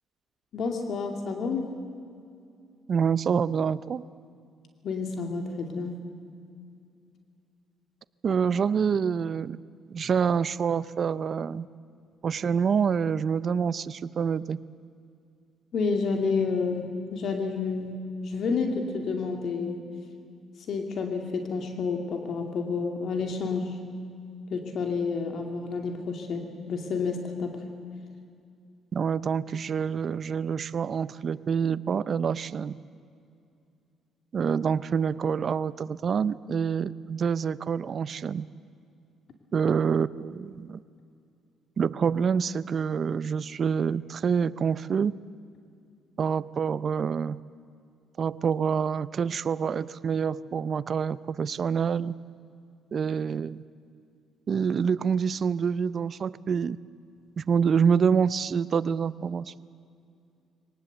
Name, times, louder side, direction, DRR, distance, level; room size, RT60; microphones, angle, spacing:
voice 1, 0.5-1.7 4.8-6.0 15.7-19.8 20.7-23.7 24.5-27.6, left 4 dB, 60° left, 4 dB, 2.4 m, -30 dB
voice 2, 2.9-4.1 8.2-9.6 9.9-11.7 12.2-14.6 28.9-32.8 34.3-38.5 39.5-40.8 41.8-45.1 46.2-47.4 48.2-52.1 52.9-53.6 54.5-56.8 57.4-59.5, right 6 dB, 50° right, 17 dB, 0.6 m, -26 dB
22.5 x 19.0 x 8.0 m, 2.4 s
cardioid pair, 90°, 0 cm